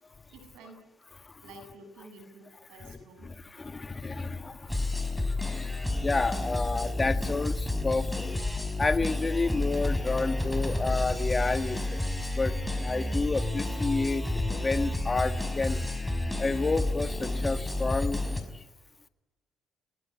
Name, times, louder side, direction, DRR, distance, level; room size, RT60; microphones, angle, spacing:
voice 1, 0.3-0.8 1.4-3.3, right 2 dB, 85° right, 7 dB, 7.3 m, -50 dB
voice 2, 3.6-4.5 6.0-8.4 8.8-12.0 12.4-12.5 12.8-14.2 14.5-15.8 16.4-18.2, left 3 dB, 25° left, 8 dB, 1.9 m, -29 dB
sound 1, 4.7-18.4, left 2 dB, 5° left, 5.0 m, -30 dB
30.0 x 20.5 x 9.8 m, 1.0 s
cardioid pair, 90°, 0 cm